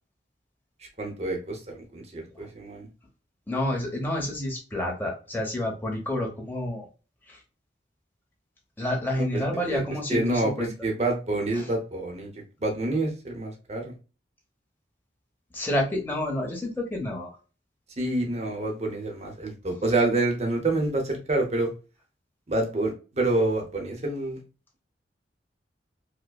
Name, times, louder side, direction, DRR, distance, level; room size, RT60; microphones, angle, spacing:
voice 1, 1.0-2.9 9.2-9.8 10.1-13.9 18.0-21.7 22.5-24.4, right 2 dB, 35° right, 2 dB, 0.8 m, -27 dB
voice 2, 3.5-6.9 7.3-7.4 8.8-10.7 11.5-11.7 15.5-17.4, left 1 dB, 10° left, -1 dB, 0.8 m, -29 dB
4.7 x 2.2 x 2.3 m, 0.34 s
head